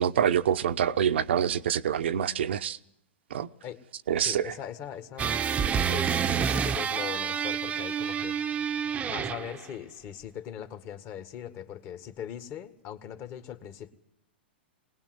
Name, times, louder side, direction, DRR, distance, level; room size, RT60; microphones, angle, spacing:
voice 1, 0.0-2.8 3.3-3.5 4.1-4.5, right 9 dB, 75° right, 0.8 m, -26 dB
voice 2, 4.2-8.4 9.1-13.9, left 9 dB, 40° left, 1.8 m, -40 dB
sound 1, 5.2-9.7, right 7 dB, 20° right, 0.8 m, -28 dB
21.0 x 19.5 x 7.9 m
hypercardioid pair, 125°, 6 cm